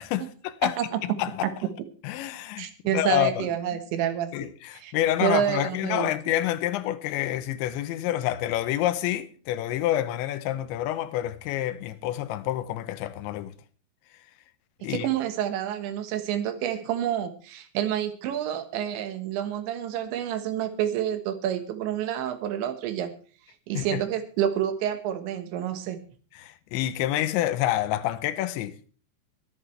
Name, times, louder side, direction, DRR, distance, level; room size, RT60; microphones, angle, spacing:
voice 1, 0.0-0.8 1.0-1.5 2.0-2.7 2.9-3.8 4.3-13.5 14.8-15.1 23.7-24.0 26.4-28.8, left 13 dB, 80° left, 3.0 m, -28 dB
voice 2, 0.6-1.0 2.6-4.5 4.7-4.9 5.2-6.1 14.8-23.1 23.7-26.0, right 10 dB, 75° right, 3.6 m, -28 dB
23.0 x 11.0 x 3.3 m
omnidirectional pair, 5.4 m